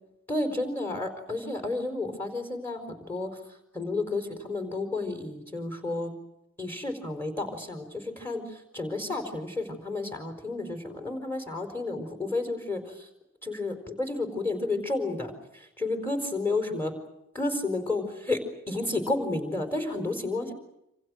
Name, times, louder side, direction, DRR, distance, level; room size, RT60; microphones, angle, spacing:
voice 1, 0.3-3.3 3.7-6.1 6.6-13.0 13.4-16.9 17.3-18.4 18.7-20.5, left 2 dB, 10° left, 6 dB, 4.5 m, -31 dB
28.0 x 27.5 x 6.4 m, 0.83 s
head